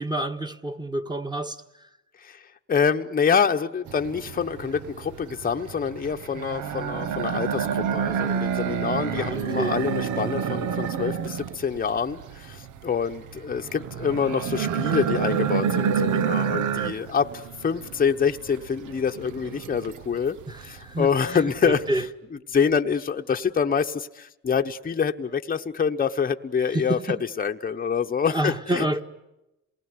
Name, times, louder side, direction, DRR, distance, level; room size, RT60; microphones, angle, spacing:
voice 1, 0.0-1.6 9.0-9.8 20.5-22.1 26.7-27.2 28.2-29.0, right 1 dB, 15° right, 1.6 m, -29 dB
voice 2, 2.7-20.4 20.6-21.8 22.5-27.0 27.4-28.8, left 6 dB, 30° left, 0.9 m, -26 dB
sound 1, 3.9-22.1, right 7 dB, 85° right, 1.1 m, -29 dB
27.5 x 19.5 x 9.6 m
cardioid pair, 90°, 30 cm